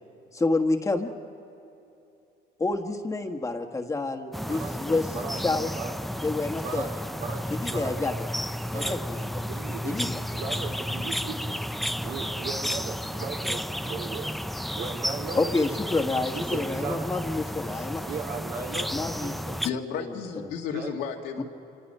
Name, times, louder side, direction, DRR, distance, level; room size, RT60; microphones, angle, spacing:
voice 1, 0.3-1.1 2.6-5.1 5.4-5.7 6.2-6.9 7.5-8.3 8.7-9.3 9.8-10.2 15.3-18.0 18.9-19.6 20.4-20.5 21.4-21.5, left 3 dB, 20° left, 3 dB, 1.4 m, -28 dB
sound 1, 4.3-19.7, equal, ahead, 0.4 m, -32 dB
voice 2, 4.4-4.8 5.1-5.4 5.7-5.9 6.6-8.0 8.7-9.0 9.4-10.1 10.3-11.5 12.0-14.3 14.7-15.4 16.3-17.1 18.0-19.6 20.7-20.9, right 5 dB, 75° right, 0 dB, 3.2 m, -37 dB
voice 3, 19.6-21.4, left 7 dB, 80° left, 2 dB, 2.1 m, -32 dB
26.5 x 25.0 x 5.5 m, 2.9 s
cardioid pair, 110°, 17 cm